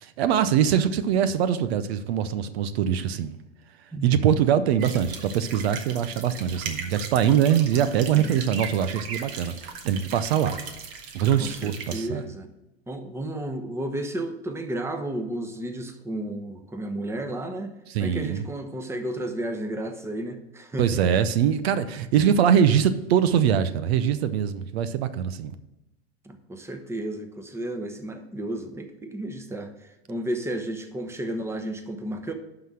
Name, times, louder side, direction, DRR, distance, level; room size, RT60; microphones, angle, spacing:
voice 1, 0.0-3.4 4.0-10.6 11.1-12.3 17.9-18.4 20.8-25.5, right 9 dB, 75° right, 12 dB, 0.8 m, -23 dB
sound 1, 4.8-12.0, right 5 dB, 55° right, 1.5 m, -38 dB
voice 2, 11.4-12.5 12.9-21.1 26.2-32.3, right 1 dB, 10° right, 6 dB, 1.0 m, -33 dB
11.5 x 3.9 x 6.3 m, 0.96 s
hypercardioid pair, 110°, 32 cm